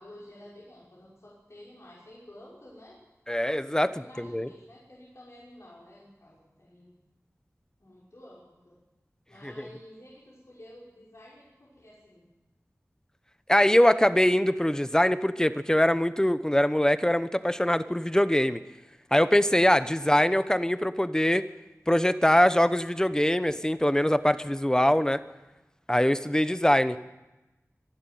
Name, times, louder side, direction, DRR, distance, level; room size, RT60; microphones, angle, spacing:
voice 1, 0.0-3.0 3.8-6.9 7.8-8.8 9.3-12.2 19.9-20.2, left 1 dB, 60° left, -6 dB, 5.6 m, -51 dB
voice 2, 3.3-4.5 9.4-9.5 13.5-18.6 19.1-21.4 21.9-25.2 25.9-27.0, left 1 dB, 10° left, 13 dB, 0.9 m, -23 dB
24.5 x 11.5 x 9.4 m, 1.1 s
wide cardioid pair, 60°, 6 cm